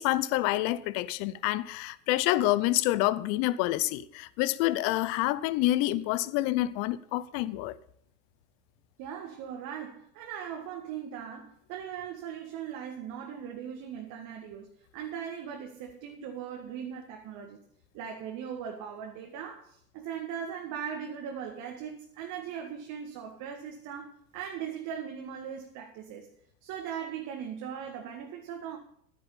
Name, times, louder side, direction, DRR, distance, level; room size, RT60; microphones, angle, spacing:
voice 1, 0.0-7.8, left 16 dB, 30° left, 0.6 m, -27 dB
voice 2, 9.0-17.6 17.9-26.3 26.6-28.8, right 8 dB, 35° right, 1.8 m, -39 dB
11.5 x 10.0 x 5.5 m
figure-of-eight pair, 100°, 50 cm